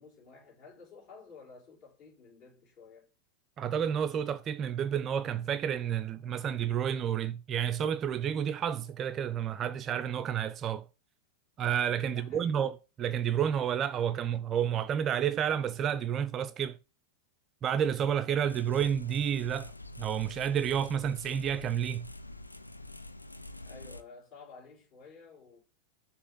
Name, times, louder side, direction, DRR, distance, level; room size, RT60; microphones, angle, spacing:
voice 1, 0.0-3.1 12.0-12.6 23.6-25.6, left 4 dB, 35° left, 3.2 m, -52 dB
voice 2, 3.6-10.8 11.6-16.8 17.6-19.7 20.0-22.1, right 8 dB, 30° right, 0.3 m, -30 dB
sound 1, 18.5-24.0, left 2 dB, 85° left, 0.4 m, -46 dB
6.4 x 2.9 x 5.3 m
figure-of-eight pair, 90°, 0 cm